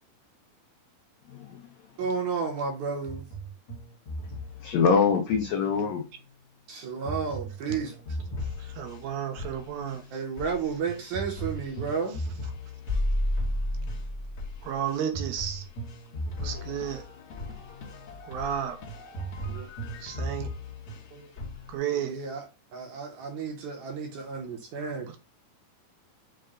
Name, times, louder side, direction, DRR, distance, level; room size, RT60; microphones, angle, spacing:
voice 1, 1.3-1.6 4.6-6.1, left 5 dB, 85° left, 1.6 m, -24 dB
voice 2, 2.0-3.2 6.7-8.0 10.1-12.2 16.4-16.6 19.5-19.7 21.1-21.3 22.0-22.4 22.7-25.1, right 5 dB, 70° right, 2.0 m, -32 dB
sound 1, 3.1-6.2 7.0-21.8, equal, 70° left, 1.3 m, -38 dB
voice 3, 8.4-10.0 14.6-15.6 16.4-17.0 18.2-18.8 20.0-20.5 21.7-22.2 25.1-25.2, right 9 dB, 85° right, 2.6 m, -32 dB
sound 2, 12.9-14.7, left 1 dB, 30° right, 0.9 m, -28 dB
6.5 x 2.2 x 3.6 m
omnidirectional pair, 4.2 m